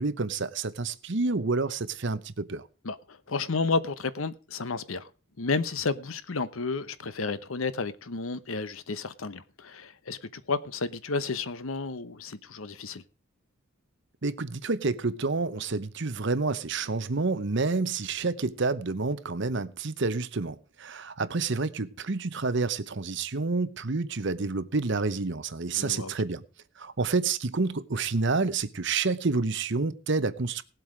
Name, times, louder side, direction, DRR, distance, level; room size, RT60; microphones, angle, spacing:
voice 1, 0.0-2.6 14.2-26.4 26.8-30.6, right 3 dB, 55° right, 0.9 m, -29 dB
voice 2, 2.8-5.1 5.4-13.0 25.7-26.1, left 4 dB, 75° left, 0.9 m, -32 dB
18.0 x 7.8 x 4.9 m
head